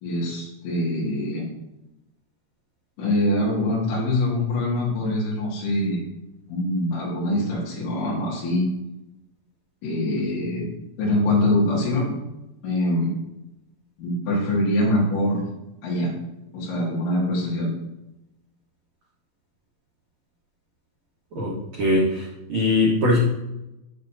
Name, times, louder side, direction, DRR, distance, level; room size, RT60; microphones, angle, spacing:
voice 1, 0.0-1.4 3.0-6.0 6.5-8.7 9.8-10.7 11.0-12.1 12.6-13.1 14.0-15.4 15.8-16.1 16.5-17.7, left 1 dB, 55° left, -5 dB, 2.4 m, -24 dB
voice 2, 21.3-23.2, left 1 dB, 80° right, -5 dB, 1.6 m, -21 dB
8.6 x 7.2 x 2.7 m, 0.93 s
omnidirectional pair, 5.4 m